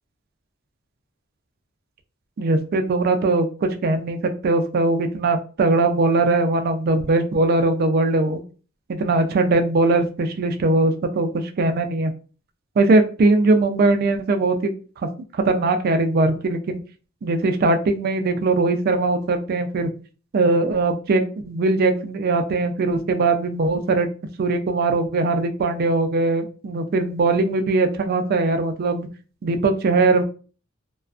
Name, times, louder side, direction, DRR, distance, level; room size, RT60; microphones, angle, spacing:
voice 1, 2.4-8.4 8.9-12.1 12.8-14.7 15.3-16.8 17.2-19.9 20.3-24.1 24.4-29.1 29.4-30.2, right 2 dB, 50° right, 7 dB, 0.3 m, -20 dB
2.4 x 2.2 x 2.3 m, 0.38 s
head